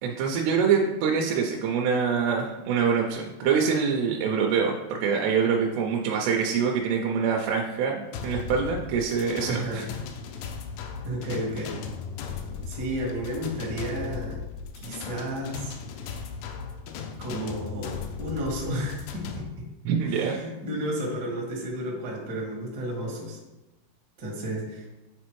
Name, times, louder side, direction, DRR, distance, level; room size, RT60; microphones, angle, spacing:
voice 1, 0.0-9.8 19.9-20.4, right 6 dB, 85° right, 0 dB, 2.7 m, -25 dB
sound 1, 8.1-19.4, left 6 dB, 85° left, 2.1 m, -37 dB
voice 2, 9.5-9.9 11.0-11.8 12.7-14.4 14.7-16.2 17.2-19.6 20.1-23.4 24.2-24.9, equal, 60° right, -3 dB, 1.1 m, -32 dB
8.7 x 4.1 x 3.1 m, 1.0 s
omnidirectional pair, 4.7 m